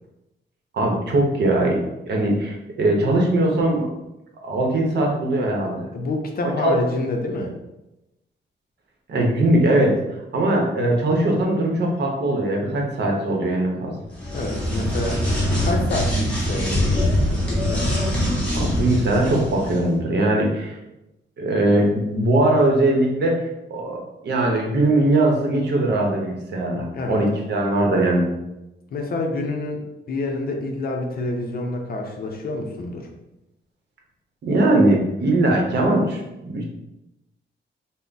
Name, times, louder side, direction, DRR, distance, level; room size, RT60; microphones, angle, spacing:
voice 1, 0.7-3.9 4.4-5.9 6.6-6.8 9.1-10.0 10.3-13.9 18.5-20.8 21.4-28.2 34.4-36.6, right 1 dB, 60° right, 0 dB, 0.8 m, -20 dB
voice 2, 5.9-7.5 14.3-15.3 15.6-17.9 26.9-27.4 28.9-29.8 30.1-33.1, left 2 dB, 50° left, 2 dB, 0.5 m, -28 dB
sound 1, 14.1-19.8, left 1 dB, 5° left, 0.9 m, -23 dB
3.4 x 2.1 x 3.9 m, 0.94 s
wide cardioid pair, 180°, 20 cm